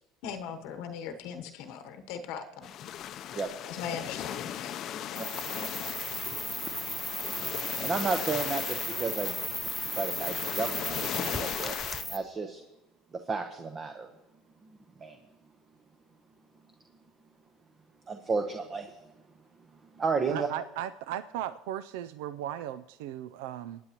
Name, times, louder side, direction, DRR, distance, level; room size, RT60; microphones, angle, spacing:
voice 1, 0.2-2.7 3.7-5.2, left 7 dB, 75° left, 7 dB, 0.9 m, -39 dB
sound 1, 2.6-12.0, left 10 dB, 55° left, 0.5 m, -38 dB
sound 2, 5.1-12.2, equal, 5° right, 0.8 m, -35 dB
voice 2, 7.8-9.4 9.9-11.8 12.1-12.6 13.3-14.1 15.0-15.2 18.1-18.9 20.0-20.5, right 4 dB, 30° right, 6 dB, 1.0 m, -32 dB
voice 3, 20.3-23.8, right 11 dB, 85° right, 14 dB, 0.3 m, -37 dB
22.5 x 9.2 x 2.9 m, 1.0 s
supercardioid pair, 105°, 0 cm